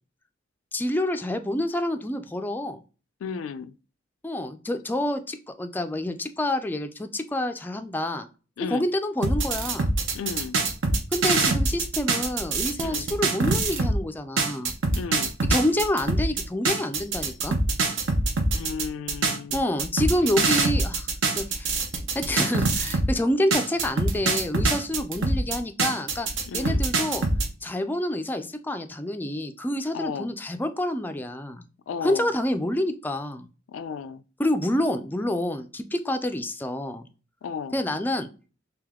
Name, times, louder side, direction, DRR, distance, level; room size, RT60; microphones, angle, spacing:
voice 1, 0.7-2.8 4.2-8.3 8.7-9.9 11.1-14.7 15.5-17.6 19.5-21.8 22.1-26.3 26.5-27.3 27.6-31.6 32.0-33.5 34.4-37.1 37.7-38.3, left 1 dB, 10° left, 0.3 m, -28 dB
voice 2, 3.2-3.7 8.6-8.9 10.1-10.6 12.8-13.1 15.0-15.4 18.5-19.6 26.5-26.8 29.9-30.3 31.9-32.3 33.7-34.2 37.4-37.8, left 6 dB, 85° left, 0.3 m, -34 dB
sound 1, 9.2-14.0 14.4-23.1 23.5-27.5, right 3 dB, 70° right, 0.7 m, -24 dB
3.4 x 3.0 x 3.6 m
head